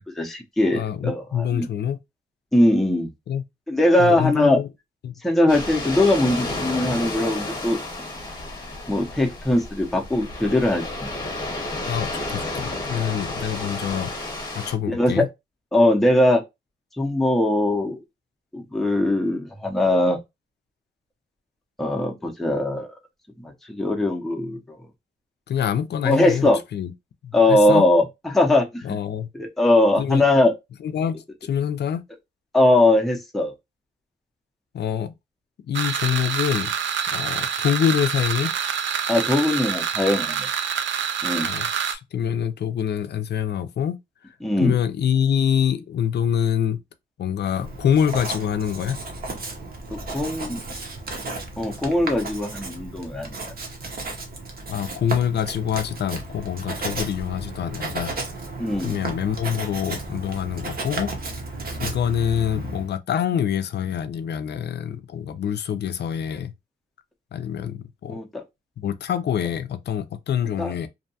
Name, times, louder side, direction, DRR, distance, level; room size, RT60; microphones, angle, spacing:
voice 1, 0.2-1.7 2.5-3.1 3.7-4.6 5.2-7.8 8.9-11.1 14.9-15.3 15.7-16.4 17.0-18.0 18.5-20.2 21.8-22.9 23.4-24.6 26.0-26.6 27.3-29.0 29.3-30.5 32.5-33.5 39.1-40.5 41.2-41.5 44.4-44.8 49.9-50.6 51.6-53.3 58.6-59.0 68.1-68.4 70.6-70.7, left 1 dB, ahead, 0.5 m, -20 dB
voice 2, 0.7-2.0 3.3-3.4 4.0-4.7 5.0-5.1 11.9-14.1 14.6-15.3 25.5-26.9 27.2-27.8 28.8-29.3 30.0-30.3 30.8-32.0 34.7-35.1 35.7-36.7 37.1-38.5 41.4-44.0 44.6-46.8 47.2-49.0 54.7-58.1 58.8-61.1 61.8-66.5 67.3-68.2 68.8-70.9, left 9 dB, 60° left, 0.4 m, -25 dB
sound 1, 5.5-14.7, left 2 dB, 20° left, 0.9 m, -31 dB
sound 2, 35.7-41.9, right 8 dB, 75° right, 0.5 m, -26 dB
Writing, 47.5-62.9, right 2 dB, 50° right, 0.8 m, -34 dB
2.6 x 2.2 x 2.6 m
wide cardioid pair, 110°, 20 cm